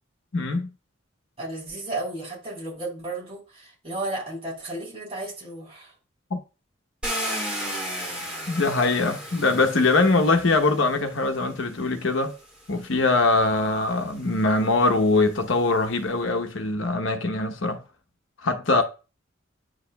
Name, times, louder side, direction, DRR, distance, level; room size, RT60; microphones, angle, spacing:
voice 1, 0.3-0.7 6.3-6.4 8.5-12.3 12.7-17.8 18.4-18.8, left 3 dB, 75° left, 0.9 m, -22 dB
voice 2, 1.4-5.9, right 2 dB, 30° right, 3.7 m, -33 dB
Car, 7.0-11.1 12.1-12.2 12.7-16.0, equal, 5° right, 2.6 m, -35 dB
9.5 x 4.9 x 2.2 m
head